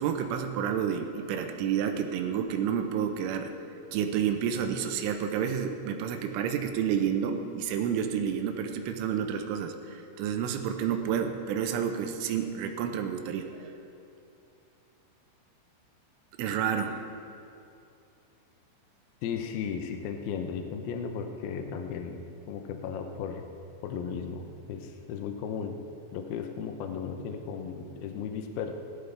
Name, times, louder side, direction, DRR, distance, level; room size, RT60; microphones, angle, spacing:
voice 1, 0.0-3.5 3.9-13.8 16.4-17.0, right 8 dB, 85° right, 5 dB, 3.3 m, -30 dB
voice 2, 19.2-22.2 22.5-23.4 23.8-25.8 26.1-28.7, left 6 dB, 90° left, 5 dB, 2.1 m, -35 dB
18.0 x 12.5 x 3.4 m, 2.7 s
omnidirectional pair, 5.6 m